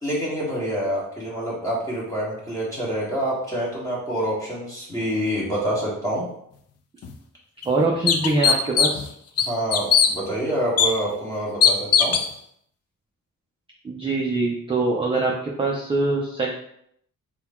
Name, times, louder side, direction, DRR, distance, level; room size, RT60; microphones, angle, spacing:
voice 1, 0.0-6.2 9.4-12.2, right 1 dB, 10° left, -6 dB, 1.5 m, -27 dB
sound 1, 7.0-7.1 7.6-7.7 8.1-9.1 9.4-10.1 10.8-10.9 11.6-12.3, left 7 dB, 45° left, 0.4 m, -18 dB
voice 2, 7.7-9.0 13.8-16.6, right 3 dB, 15° right, -2 dB, 0.4 m, -23 dB
3.8 x 2.3 x 4.2 m, 0.70 s
wide cardioid pair, 150°, 33 cm